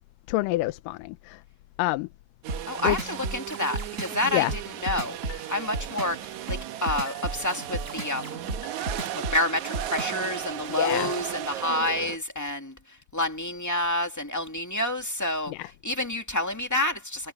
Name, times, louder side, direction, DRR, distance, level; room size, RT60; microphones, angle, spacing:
voice 1, 0.3-1.4 1.8-2.1 2.8-3.0 4.3-4.5 10.8-11.1 15.5-15.7, left 18 dB, 90° left, 2.3 m, -27 dB
sound 1, 2.4-12.2, right 12 dB, 70° right, 2.2 m, -36 dB
sound 2, 2.5-10.3, right 2 dB, 20° right, 4.9 m, -33 dB
voice 2, 2.6-5.2 5.5-8.4 9.1-17.3, left 1 dB, 5° left, 1.4 m, -29 dB
sound 3, 3.5-4.1 4.6-5.8 6.2-7.5 7.9-9.3 9.7-10.2, left 10 dB, 75° left, 8.2 m, -52 dB
omnidirectional pair, 3.8 m